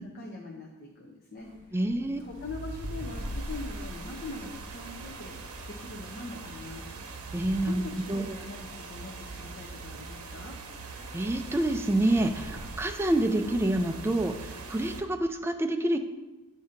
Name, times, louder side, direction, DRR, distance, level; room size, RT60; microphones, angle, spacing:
voice 1, 0.0-1.5 2.2-5.4 5.7-6.9 7.6-10.5, left 2 dB, 45° left, -1 dB, 0.6 m, -42 dB
sound 1, 1.4-5.5 6.4-8.8 12.1-13.0 13.3-13.8, equal, 40° right, 1.0 m, -42 dB
voice 2, 1.7-2.2 7.3-7.8 8.1-8.3 11.1-16.0, right 1 dB, 10° right, 6 dB, 0.3 m, -27 dB
sound 2, 2.3-15.0, right 4 dB, 85° right, 0.7 m, -43 dB
8.0 x 2.7 x 5.1 m, 1.1 s
head